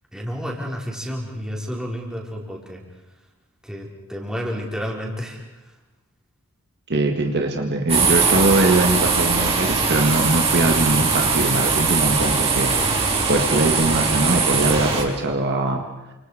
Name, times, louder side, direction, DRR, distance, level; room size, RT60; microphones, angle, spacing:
voice 1, 0.1-2.8 3.6-5.7, equal, 5° right, -2 dB, 4.6 m, -31 dB
voice 2, 6.9-15.8, right 2 dB, 50° right, 3 dB, 1.8 m, -21 dB
sound 1, 7.9-15.0, right 4 dB, 25° right, 3.9 m, -20 dB
29.0 x 26.5 x 5.0 m, 1.1 s
head